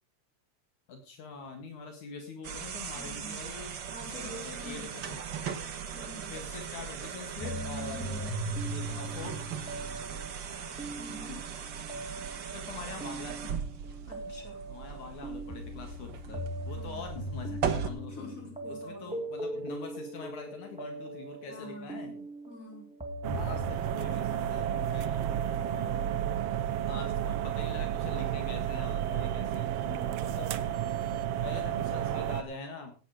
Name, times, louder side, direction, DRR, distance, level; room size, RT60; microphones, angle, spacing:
voice 1, 0.9-3.7 4.1-5.2 6.3-8.4 8.7-9.5 12.5-13.4 14.3-14.4 14.7-18.2 18.7-22.2 23.3-25.2 26.9-29.7 30.3-30.5 31.4-32.9, left 4 dB, 70° left, 4 dB, 3.2 m, -44 dB
sound 1, 2.4-17.9, right 7 dB, 50° right, 1.5 m, -39 dB
voice 2, 2.9-3.5 3.9-5.2 5.9-6.3 7.9-8.4 11.0-11.4 14.1-14.6 16.7-17.0 18.1-19.2 21.5-22.9 25.7-26.3 29.9-30.4, left 1 dB, 25° left, 0 dB, 5.1 m, -46 dB
sound 2, 7.4-23.7, right 1 dB, 5° right, 1.1 m, -40 dB
sound 3, 23.2-32.4, right 11 dB, 70° right, 1.5 m, -31 dB
17.0 x 9.1 x 4.9 m, 0.38 s
omnidirectional pair, 3.5 m